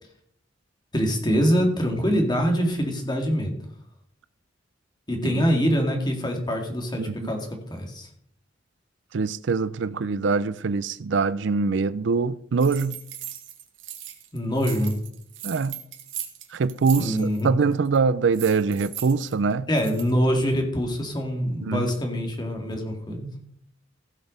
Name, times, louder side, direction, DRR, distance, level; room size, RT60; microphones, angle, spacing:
voice 1, 0.9-3.6 5.1-8.1 14.3-15.0 17.0-17.5 19.7-23.3, equal, 25° left, 2.2 m, -24 dB
voice 2, 7.0-7.3 9.1-13.0 15.4-15.8 16.5-19.7 21.6-21.9, right 4 dB, 65° right, 0.4 m, -24 dB
sound 1, 12.6-14.3 14.5-17.5 17.7-18.0 18.3-20.1, right 11 dB, 85° right, 1.8 m, -38 dB
16.0 x 6.1 x 5.3 m
head